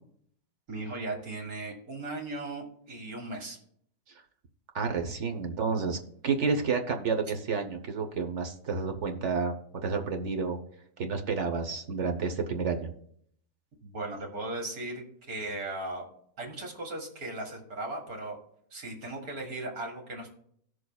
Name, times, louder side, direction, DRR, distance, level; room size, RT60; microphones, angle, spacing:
voice 1, 0.7-3.6 13.8-16.0 16.4-18.4 18.7-20.3, right 2 dB, 75° right, 1 dB, 2.3 m, -37 dB
voice 2, 4.7-9.5 9.8-10.6 11.0-12.9, right 5 dB, 55° right, 5 dB, 1.2 m, -30 dB
18.0 x 6.4 x 2.3 m, 0.67 s
omnidirectional pair, 1.6 m